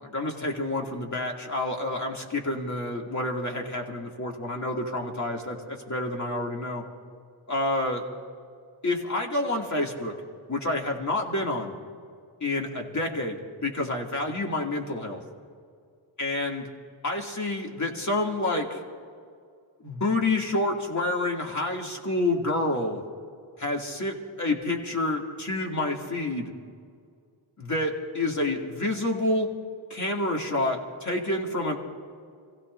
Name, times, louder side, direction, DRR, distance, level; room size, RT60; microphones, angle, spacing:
voice 1, 0.0-6.8 7.5-8.0 8.8-10.1 10.5-11.7 12.4-15.2 16.2-16.7 17.0-18.8 19.8-23.0 23.6-26.5 27.6-29.5 29.9-31.8, left 2 dB, 35° left, 1 dB, 2.6 m, -28 dB
26.0 x 16.0 x 2.7 m, 2.2 s
cardioid pair, 60°, 49 cm